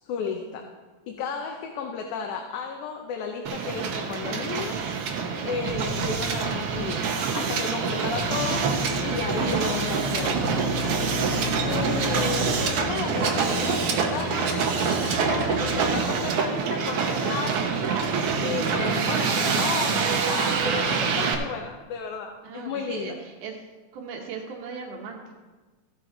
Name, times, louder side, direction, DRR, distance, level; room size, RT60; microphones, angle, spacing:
voice 1, 0.0-0.7 1.1-4.7 5.4-8.8 9.0-10.6 11.6-17.9 18.4-23.1, left 5 dB, 80° left, 3 dB, 2.2 m, -33 dB
Hiss, 3.5-21.3, right 5 dB, 65° right, 1.7 m, -26 dB
sound 1, 8.2-16.1, left 6 dB, 65° left, 2.2 m, -34 dB
voice 2, 22.4-23.6 23.9-25.4, right 5 dB, 90° right, 1 dB, 2.7 m, -38 dB
15.0 x 7.8 x 3.9 m, 1.3 s
omnidirectional pair, 3.4 m